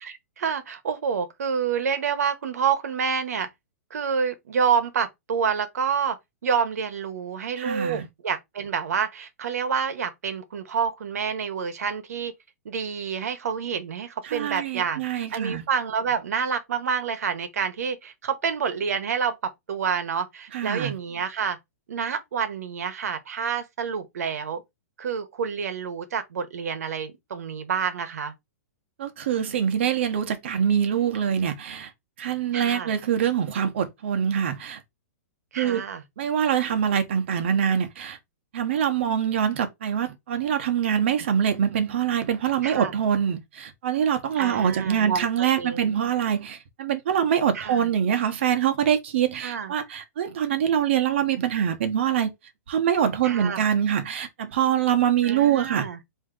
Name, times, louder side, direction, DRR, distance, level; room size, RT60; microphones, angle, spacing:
voice 1, 0.0-3.5 3.9-6.2 6.4-12.3 12.6-19.4 19.7-21.6 21.9-24.6 25.0-28.3 32.5-32.9 35.5-36.0 42.6-42.9 44.4-45.9 47.5-47.9 49.3-49.7 53.2-53.6 55.2-56.0, right 6 dB, 75° right, 1.0 m, -28 dB
voice 2, 7.6-8.1 14.2-15.6 20.5-20.9 29.0-31.9 32.2-34.8 35.6-35.8 36.2-38.2 38.5-52.3 52.7-55.9, right 9 dB, 45° right, 0.9 m, -24 dB
4.4 x 2.7 x 3.7 m
hypercardioid pair, 175°, 8 cm